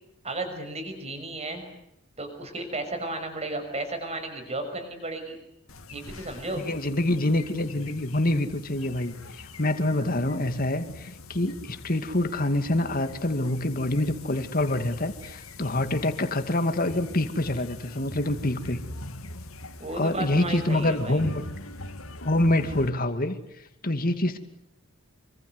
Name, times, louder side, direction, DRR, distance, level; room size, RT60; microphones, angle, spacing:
voice 1, 0.2-1.6 2.2-5.4 5.9-6.7 10.0-10.2 19.8-21.2, right 2 dB, 30° right, 7 dB, 6.3 m, -34 dB
sound 1, 5.7-22.9, left 2 dB, 85° left, 2.9 m, -43 dB
voice 2, 6.6-18.8 20.0-21.4 22.2-23.4 23.8-24.4, left 1 dB, 45° left, 8 dB, 2.4 m, -26 dB
27.0 x 25.0 x 8.2 m, 0.80 s
head